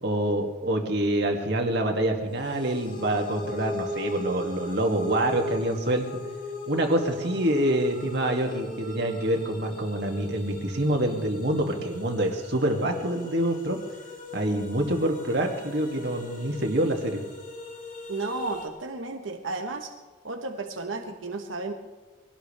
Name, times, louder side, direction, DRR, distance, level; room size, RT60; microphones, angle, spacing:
voice 1, 0.0-6.1 6.7-13.8 14.3-17.2, right 1 dB, 60° right, 2 dB, 2.4 m, -26 dB
sound 1, 2.4-18.7, left 1 dB, 45° left, 2.9 m, -38 dB
voice 2, 18.1-19.9 20.2-21.7, right 3 dB, 90° right, 4 dB, 1.3 m, -33 dB
23.5 x 18.0 x 3.4 m, 1.3 s
head